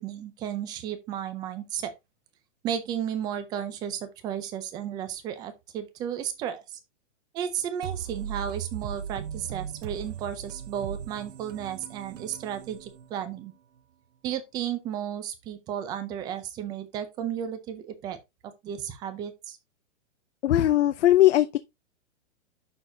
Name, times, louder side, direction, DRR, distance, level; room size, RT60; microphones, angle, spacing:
voice 1, 0.0-1.9 2.6-6.8 7.3-13.5 14.2-18.2 18.4-19.6, right 9 dB, 10° right, 0.6 m, -33 dB
sound 1, 7.8-13.5, right 8 dB, 80° right, 0.9 m, -38 dB
voice 2, 20.4-21.6, left 13 dB, 70° left, 0.7 m, -19 dB
11.0 x 4.1 x 2.8 m
hypercardioid pair, 165°, 37 cm